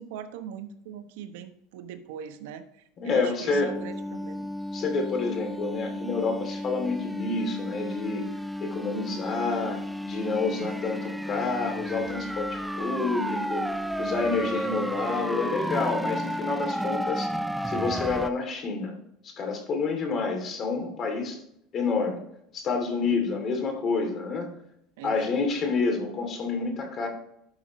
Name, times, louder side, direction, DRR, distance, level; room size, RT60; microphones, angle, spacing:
voice 1, 0.0-2.6 3.0-4.5 10.6-11.0 23.0-23.2 25.0-25.3, right 8 dB, 80° right, 9 dB, 0.9 m, -41 dB
voice 2, 3.0-3.7 4.7-8.3 8.6-9.8 10.0-17.3 17.6-18.9 19.2-21.4 21.7-22.2 22.5-24.5 25.0-27.1, left 4 dB, 35° left, 4 dB, 2.7 m, -28 dB
sound 1, 3.5-18.3, equal, 5° right, 0.4 m, -32 dB
11.5 x 6.2 x 3.1 m, 0.76 s
supercardioid pair, 130°, 0 cm